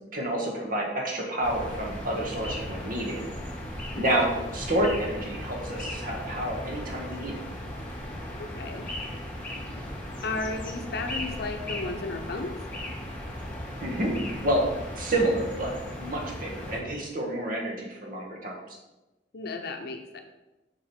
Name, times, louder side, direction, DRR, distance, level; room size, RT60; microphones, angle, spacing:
voice 1, 0.1-3.2 4.0-7.4 13.8-14.7 14.9-18.6, right 1 dB, 50° right, 0 dB, 1.4 m, -29 dB
sound 1, 1.4-16.8, left 1 dB, 10° left, 1.6 m, -37 dB
voice 2, 8.4-8.9 10.2-12.6 19.3-20.2, left 3 dB, 65° left, 5 dB, 0.7 m, -34 dB
6.1 x 4.9 x 4.3 m, 1.0 s
head